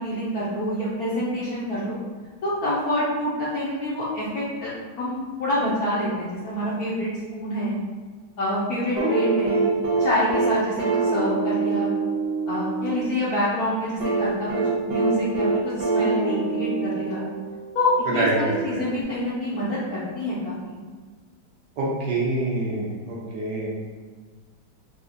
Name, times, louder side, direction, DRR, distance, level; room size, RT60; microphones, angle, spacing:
voice 1, 0.0-2.0 2.4-4.7 5.0-7.8 8.4-9.6 10.0-11.9 12.5-17.2 17.7-20.8, left 1 dB, 70° left, -8 dB, 0.9 m, -27 dB
sound 1, 9.0-13.1 14.0-17.6 19.0-19.1, right 4 dB, 85° right, 1.6 m, -24 dB
voice 2, 18.1-18.9 21.8-23.7, right 2 dB, 70° right, -6 dB, 1.3 m, -26 dB
4.2 x 2.3 x 2.5 m, 1.5 s
omnidirectional pair, 2.2 m